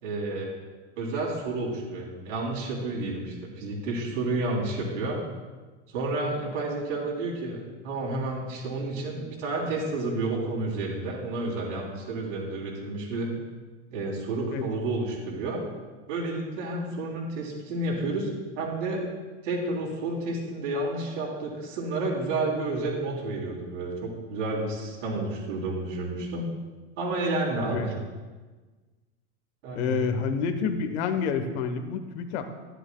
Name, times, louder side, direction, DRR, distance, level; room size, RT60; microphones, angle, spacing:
voice 1, 0.0-0.5 0.9-5.2 5.9-13.3 13.9-15.6 16.1-19.0 19.4-26.4 27.0-27.9 29.6-30.1, right 2 dB, 90° right, -3 dB, 3.3 m, -30 dB
voice 2, 29.7-32.5, left 6 dB, 65° left, 8 dB, 1.1 m, -28 dB
13.5 x 11.0 x 2.3 m, 1.3 s
supercardioid pair, 135°, 36 cm